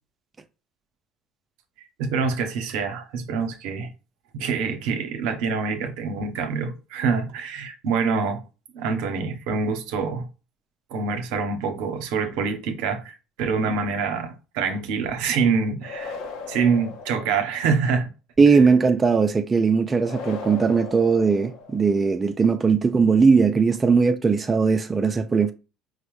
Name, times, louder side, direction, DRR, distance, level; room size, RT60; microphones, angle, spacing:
voice 1, 2.0-3.9 4.3-8.4 8.7-10.3 10.9-16.2 16.5-18.1 18.5-18.6, right 5 dB, 75° right, 0.7 m, -25 dB
sound 1, 15.8-17.9 20.0-22.1, left 4 dB, 75° left, 0.7 m, -37 dB
voice 2, 18.4-25.5, right 5 dB, 25° right, 0.4 m, -19 dB
4.6 x 2.0 x 3.0 m
supercardioid pair, 90°, 0 cm